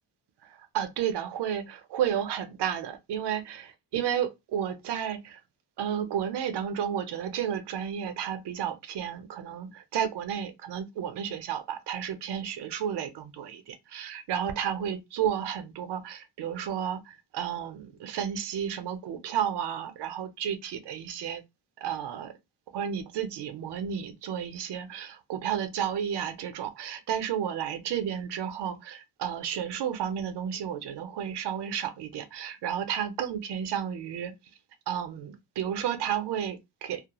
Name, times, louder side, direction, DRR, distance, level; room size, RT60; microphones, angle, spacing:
voice 1, 0.4-5.4 5.8-21.4 21.8-22.3 22.7-34.3 34.9-37.0, right 9 dB, 70° right, 0.6 m, -32 dB
2.3 x 2.0 x 2.8 m
wide cardioid pair, 150°, 42 cm